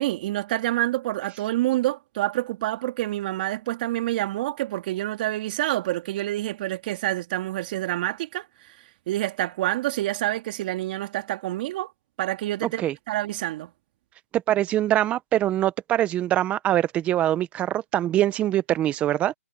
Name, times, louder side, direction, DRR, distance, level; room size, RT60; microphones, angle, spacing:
voice 1, 0.0-8.8 9.1-11.9 12.2-13.7, right 15 dB, 35° right, 2.7 m, -27 dB
voice 2, 14.3-19.3, right 13 dB, 15° right, 1.0 m, -23 dB
hypercardioid pair, 150°, 9 cm